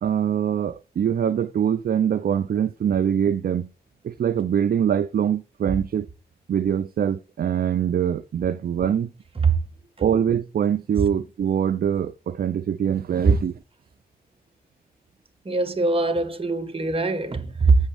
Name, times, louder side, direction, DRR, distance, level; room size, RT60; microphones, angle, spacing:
voice 1, 0.0-3.7 4.0-6.1 6.5-9.1 10.0-13.6, right 8 dB, 65° right, 0.6 m, -23 dB
voice 2, 15.5-17.8, right 4 dB, 35° right, 2.0 m, -21 dB
7.9 x 7.4 x 5.0 m
cardioid pair, 75°, 16 cm